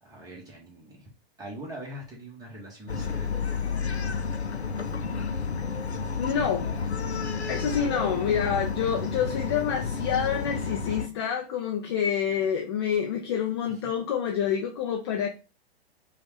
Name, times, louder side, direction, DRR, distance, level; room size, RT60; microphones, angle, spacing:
voice 1, 0.0-1.1 1.4-3.4, right 1 dB, 10° right, -3 dB, 1.3 m, -42 dB
Bark, 2.9-11.1, left 5 dB, 85° left, 0.6 m, -31 dB
voice 2, 6.2-6.7 7.5-15.3, left 8 dB, 25° left, 3 dB, 0.4 m, -27 dB
5.0 x 2.5 x 3.2 m, 0.31 s
figure-of-eight pair, 110°, 32 cm